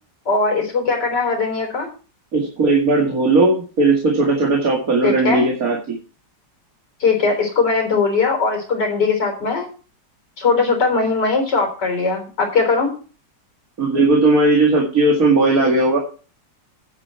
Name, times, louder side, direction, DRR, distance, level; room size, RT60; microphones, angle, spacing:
voice 1, 0.3-1.9 5.0-5.5 7.0-9.7 10.4-12.9, left 4 dB, 70° left, 3 dB, 4.3 m, -19 dB
voice 2, 2.3-6.0 13.8-16.0, right 2 dB, 50° right, -1 dB, 2.5 m, -17 dB
9.7 x 9.5 x 4.4 m, 0.37 s
omnidirectional pair, 1.9 m